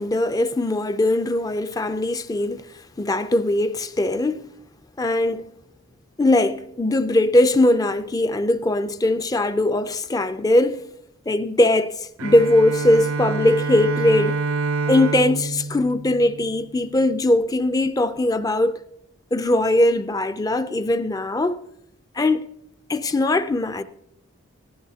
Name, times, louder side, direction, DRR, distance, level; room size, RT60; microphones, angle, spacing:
voice 1, 0.0-4.4 5.0-5.5 6.2-10.8 11.3-14.4 14.9-18.8 19.3-21.6 22.1-22.5 22.9-23.8, left 1 dB, 15° left, 0.4 m, -20 dB
Bowed string instrument, 12.2-16.9, right 3 dB, 75° right, 0.5 m, -27 dB
17.5 x 15.0 x 2.8 m
head